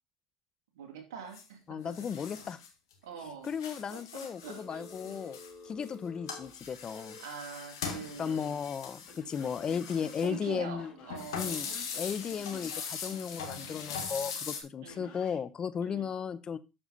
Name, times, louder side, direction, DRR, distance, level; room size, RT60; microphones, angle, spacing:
voice 1, 0.7-2.1 3.0-3.5 3.9-5.3 7.2-8.6 10.2-11.8 14.8-15.2 15.8-16.1, right 6 dB, 80° right, 4 dB, 2.6 m, -45 dB
sound 1, 1.3-1.4 1.9-2.9 3.2-5.9 6.3-10.4 11.1-14.6, left 6 dB, 85° left, 1.9 m, -41 dB
voice 2, 1.7-2.6 3.4-5.4 5.6-7.2 8.2-10.9 11.3-11.7 12.0-16.6, left 7 dB, 35° left, 16 dB, 0.8 m, -35 dB
Telephone, 4.4-7.2 7.9-8.5 9.1-12.8 14.9-15.4, left 2 dB, 55° left, 4.1 m, -51 dB
8.8 x 7.1 x 4.1 m, 0.27 s
hypercardioid pair, 80°, 2 cm